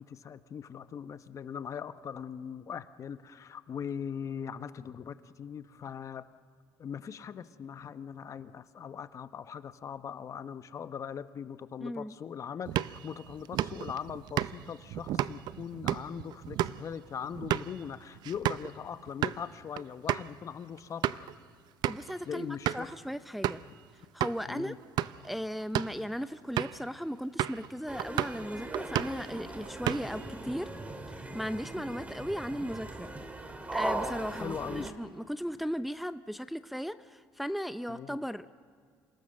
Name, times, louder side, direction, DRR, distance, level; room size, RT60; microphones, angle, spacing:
voice 1, 0.0-6.2 6.8-21.3 22.3-22.9 24.5-24.8 34.4-34.9 37.9-38.2, left 7 dB, 45° left, 12 dB, 0.9 m, -40 dB
voice 2, 11.8-12.1 21.9-23.6 24.1-24.7 25.2-30.7 31.1-33.1 33.5-38.5, equal, ahead, 12 dB, 0.5 m, -37 dB
sound 1, 12.7-18.7 19.1-19.4 19.8-19.9 20.1-20.3 20.8-21.3 21.8-22.1 22.7-22.9 23.4-23.7 24.2-24.4 24.8-25.3 25.6-26.0 26.6-26.9 27.4-27.7 28.0-28.4 28.7-29.3 29.6-30.3, right 12 dB, 65° right, 0.6 m, -32 dB
sound 2, 27.9-34.9, right 2 dB, 20° right, 2.2 m, -39 dB
27.5 x 18.0 x 6.5 m, 2.1 s
cardioid pair, 95°, 8 cm